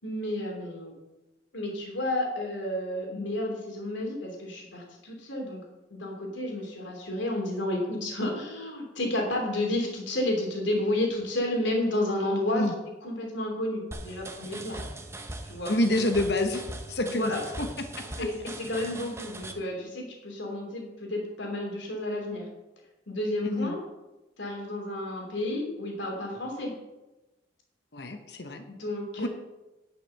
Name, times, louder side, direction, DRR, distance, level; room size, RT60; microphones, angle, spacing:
voice 1, 0.0-0.9 1.5-5.6 5.9-12.7 13.0-14.8 15.4-15.8 17.0-17.4 18.1-22.5 23.1-23.8 24.4-26.7 28.7-29.3, left 1 dB, 80° left, 1 dB, 2.9 m, -31 dB
sound 1, 13.9-19.5, right 2 dB, 15° right, 0.8 m, -40 dB
voice 2, 15.7-16.6 16.9-17.7 18.0-18.3 23.4-23.7 27.9-28.6 29.2-29.3, left 1 dB, 60° left, 6 dB, 1.0 m, -28 dB
10.5 x 6.1 x 6.6 m, 1.0 s
head